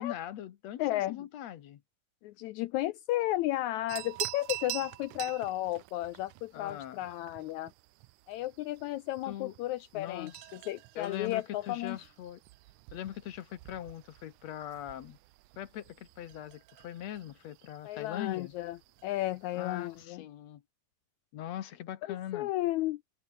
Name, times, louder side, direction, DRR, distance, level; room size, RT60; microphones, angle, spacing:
voice 1, 0.0-1.8 6.5-7.0 9.3-9.5 9.9-10.5 11.0-12.4 12.9-15.2 15.6-18.5 19.5-20.6 21.3-22.5, left 11 dB, 65° left, 2.1 m, -41 dB
voice 2, 0.8-1.2 2.2-7.7 8.3-10.3 10.7-12.0 17.8-18.8 19.0-20.2 22.1-23.2, left 15 dB, 80° left, 1.7 m, -33 dB
sound 1, 3.9-20.1, right 18 dB, 75° right, 2.0 m, -47 dB
omnidirectional pair, 3.8 m